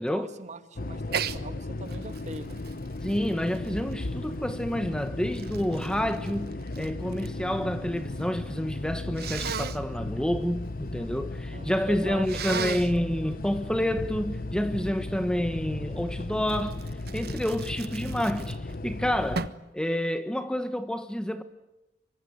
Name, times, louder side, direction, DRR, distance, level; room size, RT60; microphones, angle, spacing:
voice 1, 0.0-2.6 11.5-12.6, right 1 dB, 40° right, 2.4 m, -41 dB
sound 1, 0.8-19.5, left 2 dB, 50° left, 0.9 m, -36 dB
Sneeze, 1.1-1.4 1.9-4.2 4.9-7.4 7.7-8.3 9.2-9.8 12.2-13.0 16.5-18.8 19.3-19.7, right 6 dB, 55° right, 1.2 m, -36 dB
voice 2, 3.0-16.8 17.1-21.4, equal, 5° left, 1.2 m, -29 dB
26.0 x 24.0 x 9.4 m
head